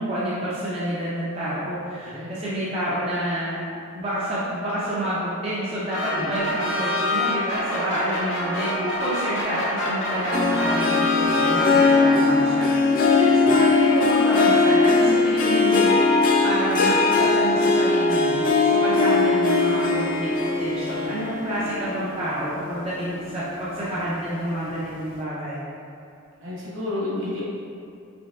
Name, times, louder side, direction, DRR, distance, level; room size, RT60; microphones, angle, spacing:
voice 1, 0.0-3.6 3.9-15.9 16.4-25.6, right 1 dB, 25° right, -9 dB, 0.5 m, -28 dB
voice 2, 2.0-2.4 6.1-6.8 13.2-13.6 26.4-27.4, left 2 dB, 60° right, -7 dB, 1.0 m, -32 dB
sound 1, 5.9-12.4, left 1 dB, 60° left, 0.7 m, -26 dB
Harp, 10.3-23.0 23.5-23.9 24.3-24.4, left 3 dB, 40° left, 0.3 m, -20 dB
5.1 x 3.2 x 2.3 m, 2.5 s
head